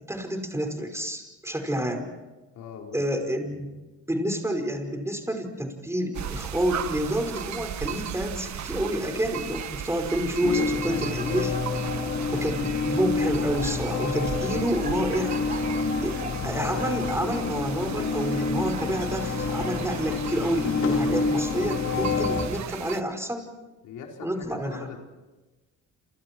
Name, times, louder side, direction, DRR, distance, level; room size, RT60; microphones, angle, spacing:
voice 1, 0.0-2.1 2.9-3.7 4.1-11.6 12.3-15.6 16.0-16.2 16.4-23.5 24.2-24.9, equal, 10° right, 4 dB, 5.4 m, -29 dB
voice 2, 2.5-3.7 23.8-25.0, left 6 dB, 85° left, 1 dB, 4.7 m, -43 dB
sound 1, 6.1-23.0, right 9 dB, 65° right, 1.5 m, -37 dB
Laughter, 10.1-20.4, right 3 dB, 30° right, 3.5 m, -44 dB
sound 2, 10.4-22.5, left 4 dB, 65° left, 4.6 m, -28 dB
29.5 x 28.0 x 4.7 m, 1.2 s
cardioid pair, 90°, 30 cm